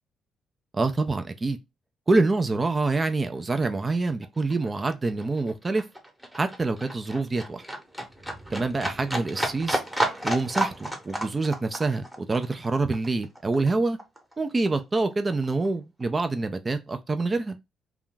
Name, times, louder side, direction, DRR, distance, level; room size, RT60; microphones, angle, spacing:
voice 1, 0.7-1.6 2.1-5.8 6.3-7.6 8.5-9.8 10.2-14.0 14.4-17.6, right 3 dB, 25° right, 0.4 m, -26 dB
Livestock farm animals working animals, 3.1-3.2 3.3-14.3 14.7-15.7 16.0-16.1, right 1 dB, 5° right, 0.9 m, -32 dB
2.5 x 2.3 x 3.7 m
cardioid pair, 90°, 0 cm